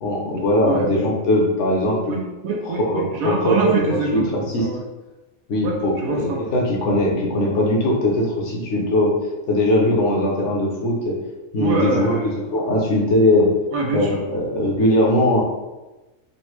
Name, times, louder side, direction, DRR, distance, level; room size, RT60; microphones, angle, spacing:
voice 1, 0.0-2.1 2.6-4.7 5.5-9.1 9.5-11.2 11.5-13.5 13.9-15.4, left 1 dB, 60° left, -2 dB, 1.0 m, -20 dB
voice 2, 2.1-4.8 5.6-6.4 11.6-12.3 13.7-14.2, right 3 dB, 80° right, -1 dB, 1.1 m, -25 dB
3.9 x 2.1 x 3.0 m, 1.1 s
omnidirectional pair, 1.5 m